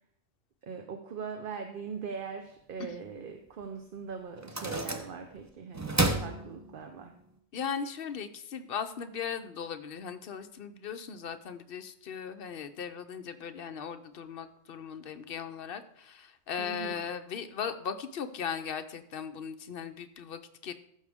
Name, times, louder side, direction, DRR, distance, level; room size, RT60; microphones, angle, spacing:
voice 1, 0.6-7.2 16.6-17.0, right 6 dB, 50° right, 6 dB, 0.8 m, -41 dB
sound 1, 3.6-3.7 4.4-5.4 5.7-7.1, right 2 dB, 20° right, 0.6 m, -31 dB
voice 2, 7.5-20.7, left 7 dB, 55° left, 9 dB, 0.8 m, -38 dB
14.5 x 6.5 x 3.5 m, 0.73 s
omnidirectional pair, 1.3 m